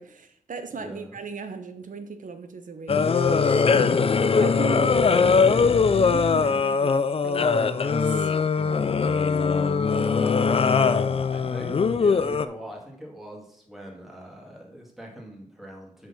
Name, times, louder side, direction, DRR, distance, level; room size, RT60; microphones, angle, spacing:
voice 1, 0.0-5.6 5.9-8.3, right 4 dB, 75° right, 9 dB, 0.9 m, -38 dB
voice 2, 0.8-1.2 9.8-16.1, equal, ahead, -1 dB, 1.9 m, -42 dB
sound 1, 2.9-12.5, left 5 dB, 45° left, 0.4 m, -21 dB
6.1 x 5.2 x 5.6 m, 0.72 s
wide cardioid pair, 110°, 13 cm